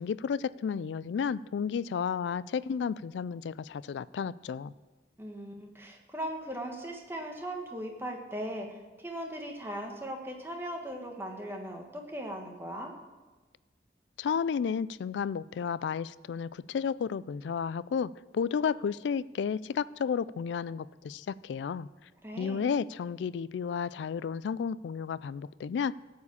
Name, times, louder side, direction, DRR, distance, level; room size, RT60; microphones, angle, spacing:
voice 1, 0.0-4.7 14.2-21.9 22.4-25.9, left 6 dB, 80° left, 19 dB, 0.3 m, -32 dB
voice 2, 5.2-12.9 22.2-22.7, equal, 15° right, 2 dB, 1.3 m, -39 dB
14.0 x 4.8 x 8.4 m, 1.3 s
head